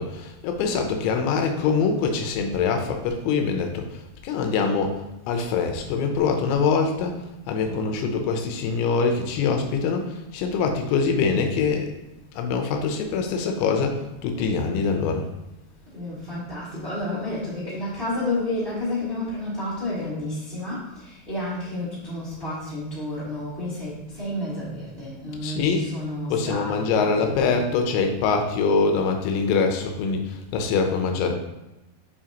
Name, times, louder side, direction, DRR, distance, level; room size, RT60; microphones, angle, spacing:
voice 1, 0.0-5.0 5.3-12.0 12.3-15.3 25.4-25.8 26.3-31.4, left 5 dB, 90° left, 4 dB, 3.0 m, -24 dB
voice 2, 15.8-27.3, left 1 dB, 75° right, -10 dB, 0.5 m, -31 dB
7.3 x 5.1 x 2.9 m, 0.95 s
omnidirectional pair, 5.1 m